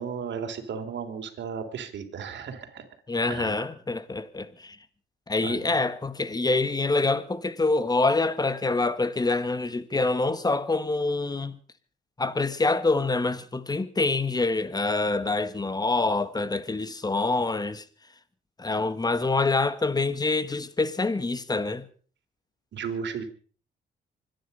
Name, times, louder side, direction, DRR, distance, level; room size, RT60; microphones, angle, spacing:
voice 1, 0.0-2.9 3.3-3.5 5.4-5.7 22.7-23.2, right 6 dB, 65° right, 3.5 m, -34 dB
voice 2, 3.1-4.8 5.3-11.5 12.2-17.8 18.6-21.8, left 3 dB, 20° left, 1.6 m, -26 dB
25.0 x 10.5 x 5.5 m
cardioid pair, 90°, 20 cm